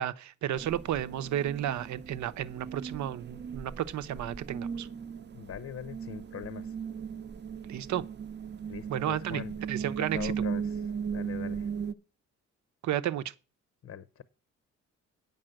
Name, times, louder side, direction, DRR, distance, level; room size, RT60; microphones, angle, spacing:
voice 1, 0.0-4.9 7.7-8.0 8.9-9.4 9.7-10.3 12.8-13.3, right 11 dB, 70° right, 0.8 m, -32 dB
sound 1, 0.6-11.9, right 7 dB, 35° right, 0.7 m, -37 dB
voice 2, 5.3-6.7 8.7-9.5 9.8-10.8 11.1-11.7 13.8-14.2, left 8 dB, 55° left, 0.8 m, -41 dB
8.9 x 5.5 x 7.7 m
cardioid pair, 90°, 30 cm